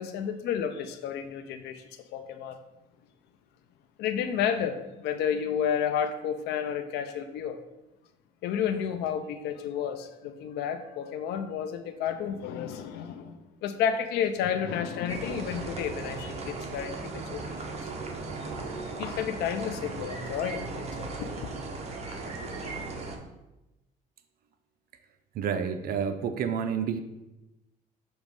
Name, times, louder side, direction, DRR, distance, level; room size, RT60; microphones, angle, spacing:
voice 1, 0.0-1.8 2.1-2.6 4.0-7.6 8.4-17.8 19.0-21.1 21.4-21.5, left 8 dB, 80° left, 8 dB, 0.5 m, -31 dB
sound 1, 15.1-23.2, right 3 dB, 40° right, 1.0 m, -37 dB
voice 2, 25.3-27.0, right 7 dB, 60° right, 9 dB, 0.5 m, -29 dB
6.3 x 3.0 x 5.2 m, 0.99 s
cardioid pair, 110°, 17 cm